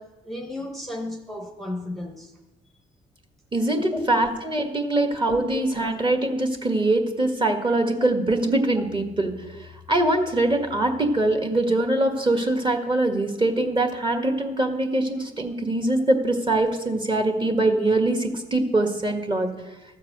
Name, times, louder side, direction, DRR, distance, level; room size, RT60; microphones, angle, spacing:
voice 1, 0.0-2.3 3.8-4.1 5.0-5.2 5.5-5.6, left 1 dB, ahead, 2 dB, 1.0 m, -34 dB
voice 2, 3.5-9.3 9.9-19.5, right 2 dB, 25° right, 4 dB, 1.5 m, -23 dB
13.0 x 4.7 x 7.9 m, 1.1 s
cardioid pair, 90°, 20 cm